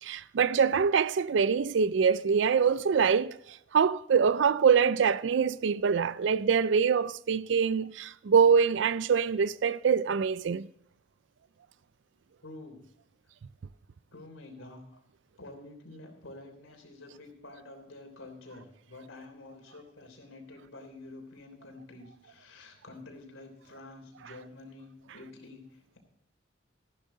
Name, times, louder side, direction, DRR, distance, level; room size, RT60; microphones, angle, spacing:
voice 1, 0.0-10.7, right 6 dB, 65° right, 0.4 m, -24 dB
voice 2, 12.4-12.8 14.1-15.0 15.4-26.0, left 2 dB, 85° left, 3.4 m, -48 dB
14.0 x 12.0 x 3.9 m
head